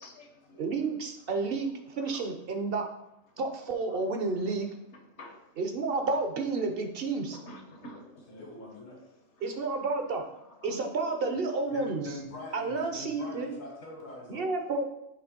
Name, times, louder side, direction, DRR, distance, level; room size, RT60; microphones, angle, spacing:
voice 1, 0.0-0.6 2.1-2.2 5.2-5.4 7.3-8.4 10.6-10.8, equal, 60° left, 4 dB, 1.2 m, -47 dB
voice 2, 0.6-1.7 1.9-2.8 3.4-4.7 5.6-7.4 9.4-10.2 10.6-12.0 12.5-13.6 14.3-14.8, right 3 dB, 50° right, 5 dB, 0.9 m, -30 dB
voice 3, 8.3-9.0 11.7-14.5, left 2 dB, 80° left, -3 dB, 2.2 m, -43 dB
6.7 x 3.2 x 5.2 m, 0.85 s
omnidirectional pair, 1.3 m